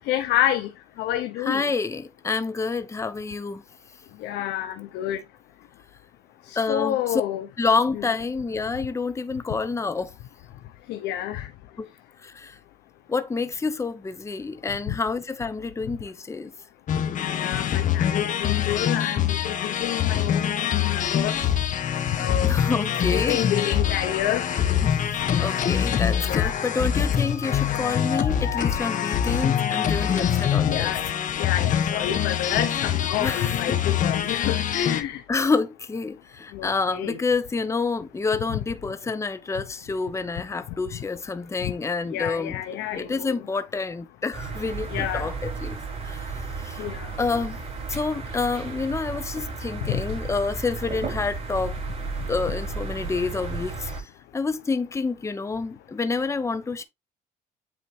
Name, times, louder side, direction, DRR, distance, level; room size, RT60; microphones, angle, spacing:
voice 1, 0.1-0.7 1.0-1.7 4.2-5.2 6.5-7.5 7.9-8.0 10.9-11.5 14.9-15.0 17.4-21.5 22.1-22.5 23.1-24.5 26.2-26.6 30.6-31.1 31.4-35.2 36.5-37.2 38.5-38.6 41.6-41.7 42.1-43.3 44.9-45.3 46.8-47.1 49.9-50.0, left 12 dB, 85° left, 0.8 m, -28 dB
voice 2, 1.4-3.6 6.5-7.2 7.6-10.1 11.8-11.9 12.2-12.6 13.1-16.5 22.4-23.4 24.8-30.9 33.2-33.6 34.3-34.5 35.3-42.5 42.9-45.8 46.0-46.8 47.2-47.6 47.9-51.8 52.3-56.8, left 4 dB, 15° left, 0.8 m, -28 dB
sound 1, 16.9-35.0, left 9 dB, 50° left, 1.2 m, -24 dB
sound 2, 44.3-54.0, right 4 dB, 40° right, 4.5 m, -33 dB
8.5 x 4.0 x 3.3 m
cardioid pair, 110°, 17 cm